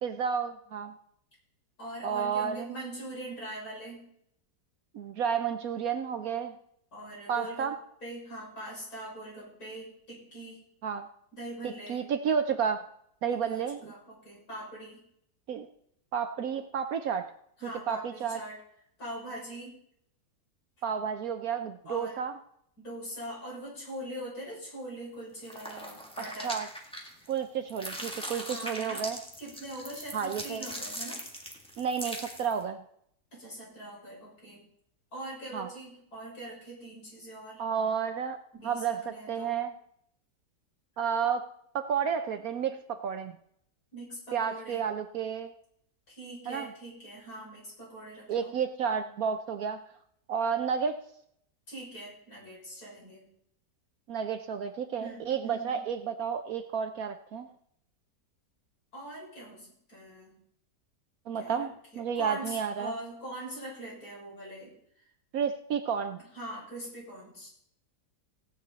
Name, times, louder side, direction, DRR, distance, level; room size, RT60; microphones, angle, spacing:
voice 1, 0.0-0.9 2.0-2.7 4.9-6.5 7.3-7.7 10.8-11.1 11.6-12.8 13.2-13.9 15.5-15.7 16.1-17.3 17.9-18.4 20.8-22.4 26.4-26.7 27.3-29.2 30.1-30.6 31.8-32.8 35.5-35.7 37.6-38.4 38.6-39.7 41.0-41.5 41.7-43.3 44.3-45.5 46.5-46.7 48.3-49.8 50.3-51.0 54.1-57.5 61.3-62.9 65.3-66.2, right 7 dB, 65° right, 8 dB, 1.0 m, -31 dB
voice 2, 1.8-4.0 6.9-7.7 8.0-10.6 11.3-12.0 13.3-15.0 17.6-18.6 19.0-19.7 21.8-22.2 22.8-26.5 28.4-29.1 29.4-31.2 33.3-34.6 35.1-37.7 38.5-39.6 43.9-44.8 46.1-48.5 51.7-53.2 55.0-55.8 58.9-60.3 61.4-61.7 61.9-64.7 66.3-67.5, right 1 dB, 60° left, -5 dB, 6.8 m, -42 dB
sound 1, 25.4-27.4 27.7-32.6, equal, 5° left, 1.6 m, -40 dB
16.5 x 9.4 x 4.1 m, 0.70 s
omnidirectional pair, 1.9 m